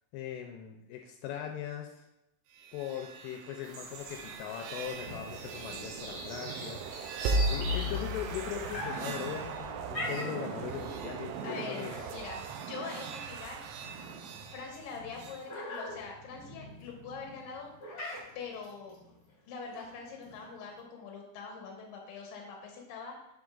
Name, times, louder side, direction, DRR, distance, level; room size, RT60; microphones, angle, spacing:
voice 1, 0.1-2.0 2.7-6.8 7.4-12.0, left 10 dB, 85° left, 3 dB, 2.7 m, -40 dB
sound 1, 2.6-15.4, right 2 dB, 80° right, 2.6 m, -37 dB
sound 2, 3.6-8.8, right 1 dB, 65° right, 3.0 m, -44 dB
sound 3, 4.9-20.8, left 1 dB, 50° left, 1.3 m, -45 dB
voice 2, 11.4-13.6 14.5-17.7 18.4-18.9 19.5-23.2, left 5 dB, 65° left, 0 dB, 2.5 m, -43 dB
7.1 x 6.2 x 2.4 m, 0.87 s
omnidirectional pair, 5.0 m